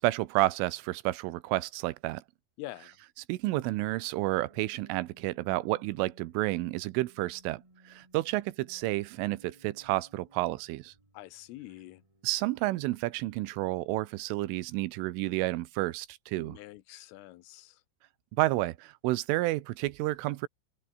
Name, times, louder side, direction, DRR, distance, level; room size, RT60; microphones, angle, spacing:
voice 1, 0.0-2.2 3.3-10.9 12.2-16.6 18.4-20.5, right 18 dB, 85° right, 3.5 m, -30 dB
voice 2, 2.6-3.0 11.1-12.0 16.3-17.8, left 16 dB, 90° left, 3.8 m, -45 dB
sound 1, 4.3-14.5 15.1-15.4, right 1 dB, 5° right, 4.0 m, -62 dB
open air
omnidirectional pair, 5.6 m